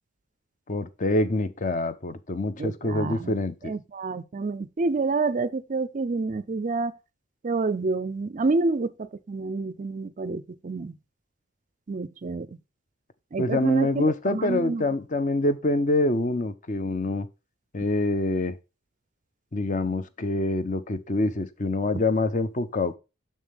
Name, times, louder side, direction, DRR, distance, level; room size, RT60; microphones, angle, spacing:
voice 1, 0.7-3.7 13.4-17.3 17.7-18.6 19.5-23.0, left 2 dB, 40° left, 0.7 m, -26 dB
voice 2, 2.6-3.3 3.6-6.9 7.4-10.9 11.9-12.5 13.3-14.8, right 3 dB, 40° right, 0.4 m, -28 dB
7.2 x 6.5 x 3.5 m
head